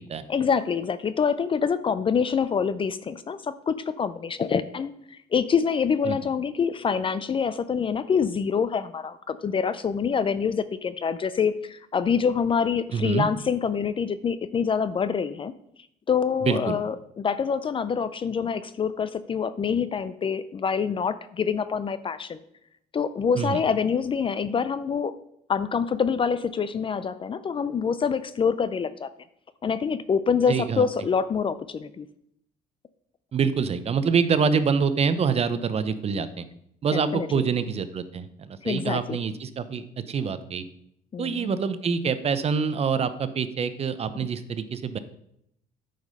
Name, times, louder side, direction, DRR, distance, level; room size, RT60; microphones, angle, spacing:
voice 1, 0.3-15.5 16.1-22.4 22.9-25.1 25.5-29.1 29.6-32.1 36.9-37.4 38.6-39.2 41.1-41.5 44.2-44.3, left 6 dB, 30° left, 14 dB, 0.5 m, -26 dB
voice 2, 12.9-13.3 16.4-16.8 23.4-23.6 30.5-30.8 33.3-36.5 36.8-40.6 41.2-45.0, right 6 dB, 35° right, 12 dB, 0.7 m, -26 dB
9.1 x 5.1 x 5.4 m, 0.73 s
cardioid pair, 110°, 17 cm